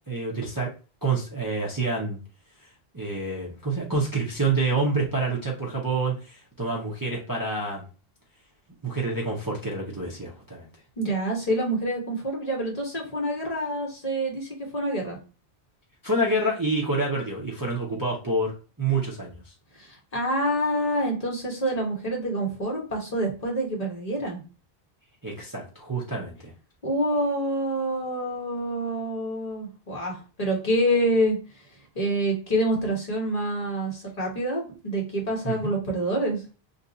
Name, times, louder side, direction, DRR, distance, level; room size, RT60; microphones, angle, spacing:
voice 1, 0.1-0.7 1.0-2.2 2.6-2.7 2.9-7.8 8.8-10.7 16.0-19.3 25.2-26.5 35.4-35.7, right 2 dB, 25° right, -4 dB, 0.6 m, -27 dB
voice 2, 11.0-15.2 19.7-24.4 26.8-31.4 31.9-36.4, right 1 dB, 40° left, -1 dB, 1.0 m, -27 dB
2.6 x 2.3 x 3.8 m, 0.35 s
omnidirectional pair, 1.0 m